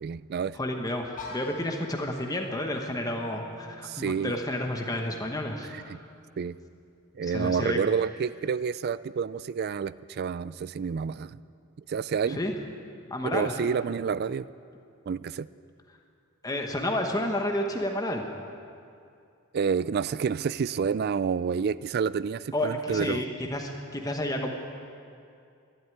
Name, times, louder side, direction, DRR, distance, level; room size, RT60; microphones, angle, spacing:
voice 1, 0.0-0.6 3.8-4.3 5.7-6.0 6.4-6.6 7.2-11.4 11.9-12.4 13.2-14.5 15.1-15.5 19.5-23.2, right 6 dB, 45° right, 18 dB, 0.3 m, -29 dB
voice 2, 0.5-6.0 7.2-7.8 12.3-12.5 13.1-13.5 16.4-18.3 22.5-24.5, left 1 dB, 15° left, 3 dB, 1.0 m, -31 dB
sound 1, 1.2-7.0, left 3 dB, 35° left, 2.1 m, -47 dB
12.5 x 11.5 x 9.3 m, 2.5 s
head